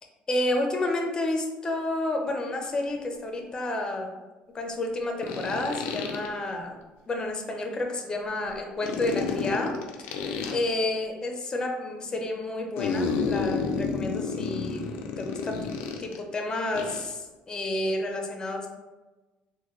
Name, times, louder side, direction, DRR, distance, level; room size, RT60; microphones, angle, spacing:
voice 1, 0.3-4.1 4.5-6.8 7.1-9.7 10.5-14.8 15.2-15.7 16.0-18.7, left 2 dB, 25° left, 3 dB, 0.6 m, -30 dB
sound 1, 2.6-2.7 5.2-6.3 8.8-10.6 12.8-16.2 16.7-17.1, left 5 dB, 90° left, 0.4 m, -30 dB
4.0 x 2.2 x 3.1 m, 1.1 s
cardioid pair, 120°, 3 cm